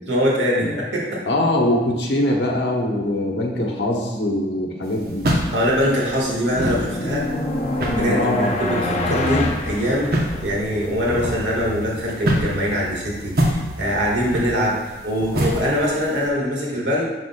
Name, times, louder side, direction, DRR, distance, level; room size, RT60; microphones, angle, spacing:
voice 1, 0.1-1.2 5.5-7.3 7.9-10.1 10.4-14.8 15.0-17.1, equal, 80° right, -3 dB, 1.7 m, -22 dB
voice 2, 1.3-5.3 8.0-8.5, left 1 dB, 75° left, 0 dB, 1.1 m, -22 dB
sound 1, 4.8-16.3, equal, 60° right, 0.9 m, -27 dB
sound 2, 5.8-10.7, left 1 dB, 40° left, 0.6 m, -26 dB
11.0 x 4.0 x 2.3 m, 1.3 s
head